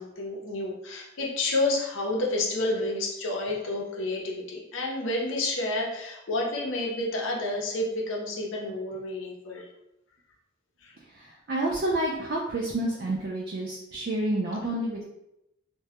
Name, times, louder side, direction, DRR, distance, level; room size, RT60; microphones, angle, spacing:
voice 1, 0.0-9.7 10.8-10.9, left 2 dB, 80° left, -1 dB, 0.6 m, -30 dB
voice 2, 11.1-15.0, right 1 dB, 50° right, -3 dB, 0.3 m, -29 dB
2.2 x 2.0 x 2.8 m, 0.84 s
head